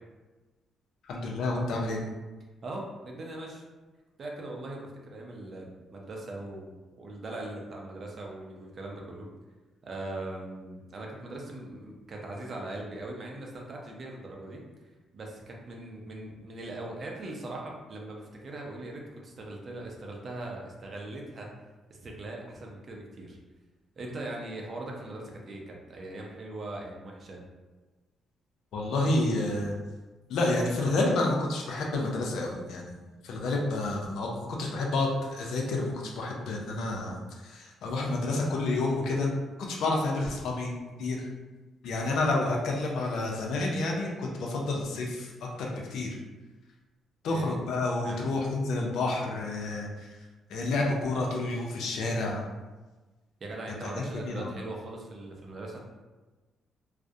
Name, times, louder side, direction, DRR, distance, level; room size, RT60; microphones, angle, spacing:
voice 1, 1.1-2.0 28.7-29.8 30.3-33.0 33.2-34.3 34.6-39.3 39.6-40.7 41.0-41.3 41.8-46.2 47.2-50.1 50.5-52.4 53.8-53.9 54.2-54.5, left 2 dB, 75° left, -1 dB, 0.5 m, -29 dB
voice 2, 2.6-3.6 4.2-9.3 9.8-14.6 15.1-21.5 21.9-23.4 24.0-27.4 47.3-47.6 48.0-48.3 53.4-55.8, right 2 dB, 45° right, -1 dB, 0.5 m, -40 dB
2.3 x 2.0 x 2.6 m, 1.2 s
cardioid pair, 90°, 0 cm